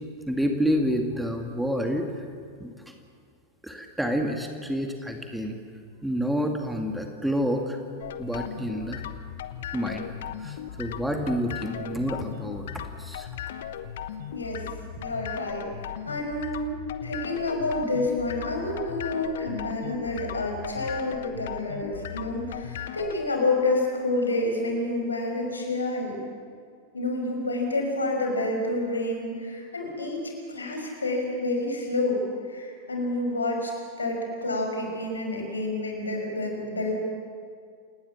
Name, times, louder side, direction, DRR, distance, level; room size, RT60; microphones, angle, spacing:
voice 1, 0.3-2.1 2.6-2.7 3.6-5.6 6.0-7.8 8.2-9.0 9.7-10.1 10.4-12.7 13.0-13.3, equal, ahead, 3 dB, 2.3 m, -28 dB
sound 1, 8.0-23.2, left 9 dB, 60° left, 1.2 m, -37 dB
voice 2, 14.3-14.6 15.0-16.8 17.0-26.2 26.9-32.2 32.5-33.7 34.0-37.0, left 2 dB, 75° left, 2 dB, 5.7 m, -29 dB
28.5 x 19.0 x 7.4 m, 2.2 s
figure-of-eight pair, 90°, 0 cm